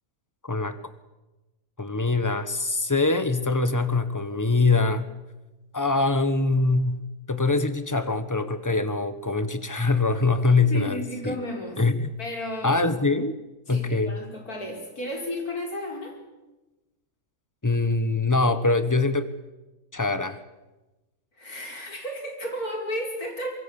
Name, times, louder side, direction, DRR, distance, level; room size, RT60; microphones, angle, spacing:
voice 1, 0.4-0.8 1.8-5.1 5.7-7.0 7.3-11.0 11.2-11.4 11.8-12.1 12.6-13.3 13.7-14.2 17.6-19.3 19.9-20.4, left 3 dB, 10° left, 11 dB, 1.3 m, -23 dB
voice 2, 10.7-11.8 12.2-12.8 13.7-16.2 21.4-23.6, left 1 dB, 65° left, 2 dB, 5.2 m, -33 dB
24.5 x 22.5 x 7.2 m, 1.1 s
omnidirectional pair, 1.7 m